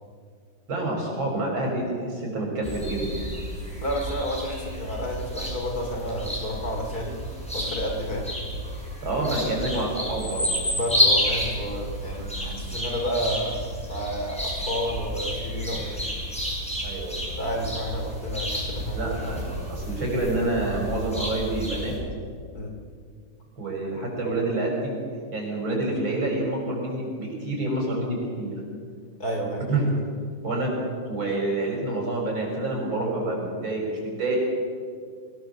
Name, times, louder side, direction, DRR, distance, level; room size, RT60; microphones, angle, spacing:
voice 1, 0.7-3.0 9.0-10.4 16.8-17.2 18.9-21.9 23.6-24.9 25.3-28.6 29.7-29.9 30.4-30.7 31.1-34.4, right 2 dB, 80° right, -1 dB, 7.0 m, -28 dB
sound 1, 2.6-22.0, equal, 5° left, 6.7 m, -30 dB
voice 2, 3.8-7.2 7.5-8.3 10.7-16.1 17.4-19.3 22.5-22.7 29.2-29.6, equal, 50° left, 3 dB, 3.5 m, -30 dB
24.0 x 18.5 x 7.2 m, 2.1 s
omnidirectional pair, 2.1 m